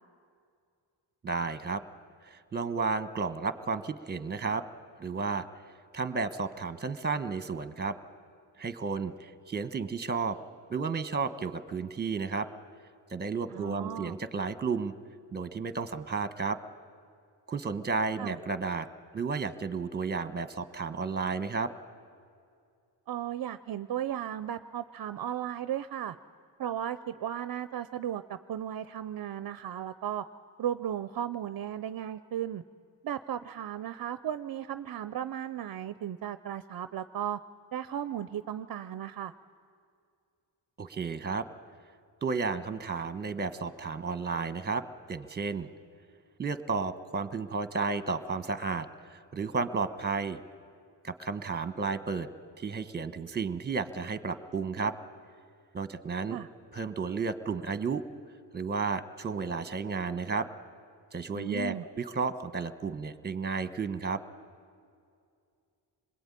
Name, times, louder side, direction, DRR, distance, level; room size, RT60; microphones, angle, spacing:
voice 1, 1.2-1.8 2.2-4.6 5.0-5.5 5.9-7.9 8.6-10.4 10.7-12.5 13.1-14.9 15.3-16.6 17.5-18.9 19.1-21.7 40.8-41.5 42.2-45.7 46.4-50.4 51.0-52.3 52.6-54.9 55.7-56.4 56.7-58.0 58.5-60.5 61.1-64.2, right 4 dB, 20° right, 12 dB, 1.2 m, -32 dB
voice 2, 13.5-14.2 18.2-18.4 23.1-26.2 26.6-30.2 30.6-32.6 33.0-37.4 37.7-39.3 56.3-56.5 61.3-61.8, right 10 dB, 50° right, 13 dB, 0.7 m, -35 dB
26.5 x 21.5 x 9.9 m, 2.4 s
cardioid pair, 125°, 45 cm